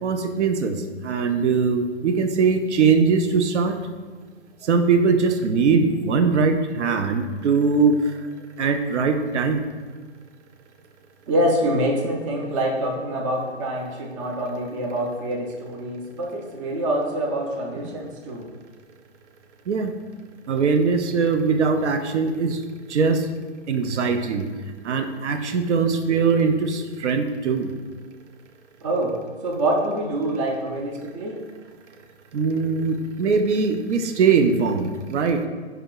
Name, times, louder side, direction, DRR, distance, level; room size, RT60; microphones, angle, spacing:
voice 1, 0.0-3.8 4.6-8.1 8.6-9.6 19.7-19.9 20.5-22.6 22.9-23.3 23.7-24.5 24.8-27.7 32.3-35.4, right 5 dB, 85° right, 7 dB, 0.5 m, -21 dB
voice 2, 11.3-18.5 28.8-31.4, right 1 dB, 30° right, 1 dB, 0.4 m, -25 dB
3.3 x 2.9 x 3.6 m, 1.5 s
hypercardioid pair, 135°, 34 cm